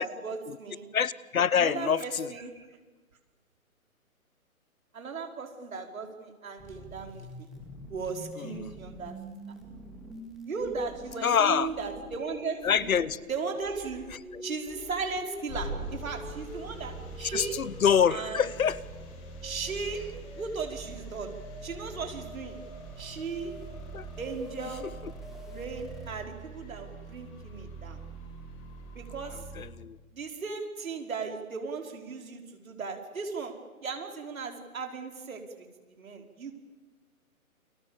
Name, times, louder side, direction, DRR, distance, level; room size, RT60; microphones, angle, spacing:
voice 1, 0.0-0.9 1.5-2.7 4.9-7.5 7.9-9.1 10.4-12.9 13.3-14.1 14.4-17.6 18.1-18.5 19.4-20.0 20.4-21.3 21.6-22.6 23.0-23.5 24.2-24.9 25.5-28.0 29.0-29.5 30.1-33.5 33.8-35.7 36.0-36.5, right 4 dB, 70° right, 3 dB, 5.4 m, -36 dB
voice 2, 0.9-2.3 8.4-8.7 11.2-11.7 12.6-13.2 14.1-14.4 17.2-18.8 23.9-24.1 29.2-30.0, left 7 dB, 70° left, 19 dB, 1.2 m, -26 dB
sound 1, 6.6-26.1, right 1 dB, ahead, 2.3 m, -46 dB
sound 2, 15.5-29.6, right 2 dB, 25° left, 6.6 m, -43 dB
29.5 x 24.0 x 7.4 m, 1.3 s
hypercardioid pair, 160°, 43 cm